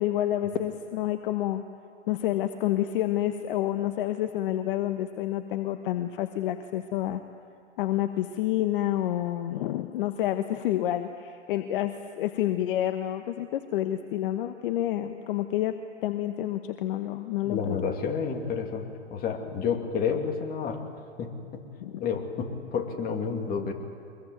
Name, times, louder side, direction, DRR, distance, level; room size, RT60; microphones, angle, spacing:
voice 1, 0.0-1.6 2.1-7.2 7.8-15.8 16.0-17.8 21.8-22.0, left 13 dB, 50° left, 8 dB, 1.1 m, -29 dB
voice 2, 17.4-20.8 21.2-21.6 22.0-23.7, left 6 dB, 25° left, 3 dB, 2.6 m, -30 dB
23.5 x 22.0 x 9.2 m, 2.3 s
hypercardioid pair, 125°, 35 cm